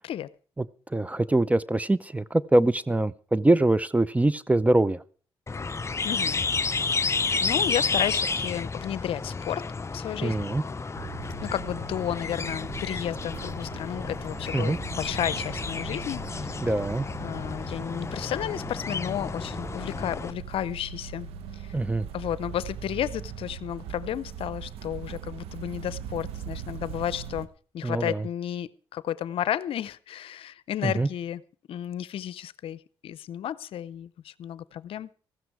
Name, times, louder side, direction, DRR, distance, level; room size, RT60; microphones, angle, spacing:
voice 1, 0.6-5.0 10.2-10.6 14.5-14.8 16.6-17.1 21.7-22.1 27.8-28.3 30.8-31.1, right 2 dB, 15° right, 0.6 m, -24 dB
sound 1, 5.5-20.3, left 4 dB, 30° left, 0.6 m, -31 dB
voice 2, 6.0-6.4 6.9-9.7 9.9-10.5 11.4-16.6 17.2-21.3 21.5-21.8 22.1-31.4 31.7-35.1, left 11 dB, 70° left, 0.6 m, -33 dB
sound 2, 11.0-27.5, right 8 dB, 85° right, 1.0 m, -41 dB
15.0 x 12.5 x 4.7 m
supercardioid pair, 55°, 10 cm